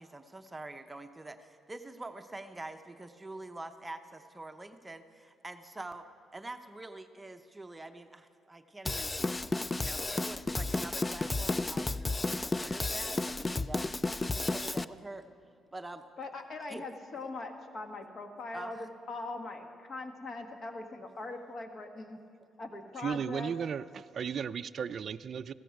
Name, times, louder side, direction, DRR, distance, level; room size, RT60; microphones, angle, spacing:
voice 1, 0.0-6.1 6.3-9.5 9.8-12.1 12.5-13.8 14.2-15.3 15.7-16.0 16.7-16.8 18.5-18.9, right 2 dB, 15° right, 7 dB, 0.7 m, -45 dB
Drum kit / Drum, 8.9-14.9, left 2 dB, 20° left, 0.3 m, -32 dB
voice 2, 16.2-22.2 22.6-23.5, left 3 dB, 45° left, 5 dB, 1.6 m, -41 dB
voice 3, 23.0-25.5, right 7 dB, 55° right, 12 dB, 0.3 m, -35 dB
15.5 x 14.5 x 4.6 m, 2.5 s
cardioid pair, 90°, 0 cm